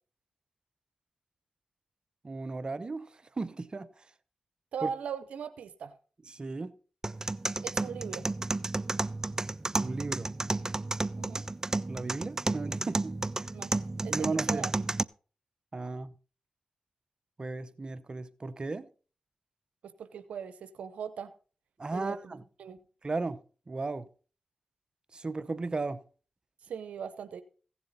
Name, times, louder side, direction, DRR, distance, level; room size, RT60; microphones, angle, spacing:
voice 1, 2.2-4.0 4.8-4.9 6.3-6.8 9.8-10.3 11.9-13.2 14.1-14.7 15.7-16.1 17.4-18.9 21.8-22.4 23.0-23.4 23.7-24.1 25.1-26.0, right 3 dB, 40° right, 0.8 m, -35 dB
voice 2, 4.7-5.9 7.6-8.3 11.2-11.4 13.5-13.7 14.0-14.8 19.8-21.3 21.9-22.8 26.6-27.4, right 7 dB, 90° right, 0.7 m, -39 dB
sound 1, 7.0-15.0, right 2 dB, 25° right, 0.4 m, -32 dB
15.5 x 7.2 x 4.0 m
cardioid pair, 45°, 2 cm